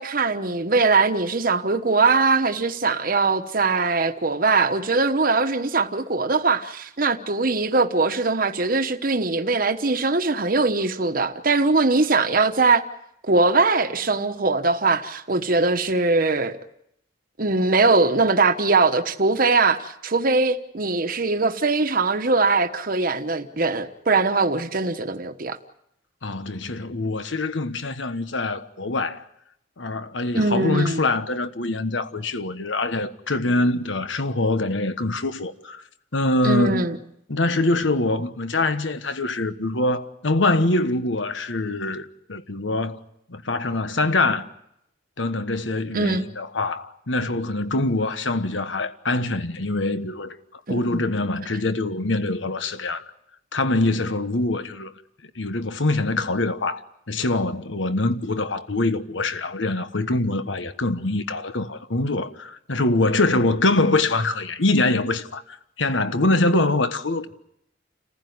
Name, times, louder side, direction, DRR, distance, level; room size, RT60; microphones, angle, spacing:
voice 1, 0.0-12.8 13.3-16.6 17.4-25.6 30.3-31.0 36.4-37.0 45.9-46.2 50.7-51.0, right 3 dB, 50° right, 1.1 m, -21 dB
voice 2, 26.2-29.2 29.8-35.8 36.1-36.9 37.3-43.0 43.3-44.4 45.2-50.4 50.7-53.0 53.5-54.9 55.3-56.8 57.1-67.3, left 2 dB, 80° left, 1.3 m, -24 dB
29.5 x 15.0 x 9.5 m
head